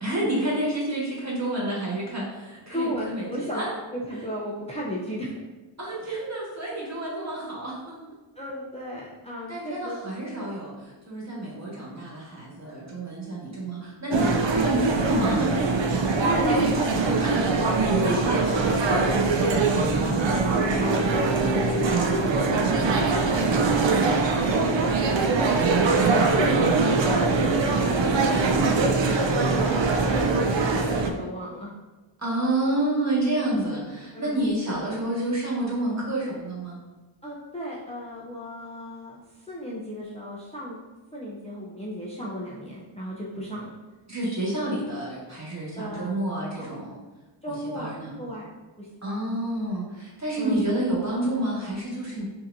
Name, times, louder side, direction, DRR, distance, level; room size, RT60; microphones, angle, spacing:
voice 1, 0.0-3.7 5.8-8.0 9.5-15.8 17.2-17.4 18.0-19.7 32.2-36.8 44.1-47.0 47.5-48.1 49.0-52.2, right 1 dB, 35° right, -5 dB, 1.5 m, -29 dB
voice 2, 2.7-3.6 3.9-5.3 6.1-6.2 8.4-10.0 16.1-17.2 17.6-18.6 19.9-25.7 26.1-31.7 34.1-34.7 37.2-39.2 39.5-40.8 41.1-43.7 45.8-46.2 46.6-46.7 47.4-48.5 48.8-49.2 50.4-50.8, equal, 15° left, -6 dB, 0.6 m, -34 dB
sound 1, 14.1-31.1, right 3 dB, 60° right, 0.5 m, -22 dB
5.5 x 2.9 x 2.6 m, 1.2 s
wide cardioid pair, 75°, 50 cm